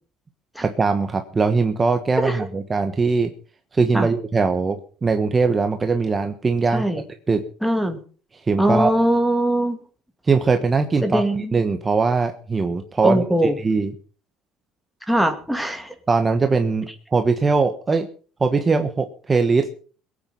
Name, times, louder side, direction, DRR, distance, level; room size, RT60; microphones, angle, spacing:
voice 1, 0.6-3.3 3.7-6.8 7.3-7.4 8.5-8.9 10.2-11.2 11.5-13.2 13.6-13.9 16.1-18.1 18.4-19.7, right 4 dB, 20° right, 6 dB, 1.3 m, -21 dB
voice 2, 6.7-7.0 7.6-8.0 8.6-9.8 11.0-11.5 13.0-13.5 15.1-15.9, right 1 dB, ahead, 5 dB, 2.4 m, -21 dB
22.0 x 9.3 x 5.6 m, 0.41 s
cardioid pair, 125°, 0 cm